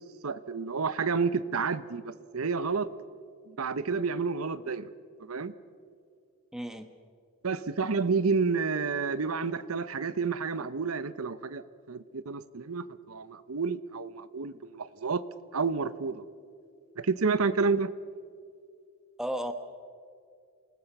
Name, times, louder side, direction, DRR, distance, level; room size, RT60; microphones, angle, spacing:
voice 1, 0.2-2.9 3.5-4.9 5.2-5.5 7.4-11.6 11.9-15.2 15.5-16.2 17.0-17.9, right 4 dB, 80° right, 15 dB, 0.9 m, -30 dB
voice 2, 6.5-6.9 19.2-19.5, equal, ahead, 8 dB, 1.2 m, -33 dB
28.0 x 19.5 x 6.0 m, 2.3 s
head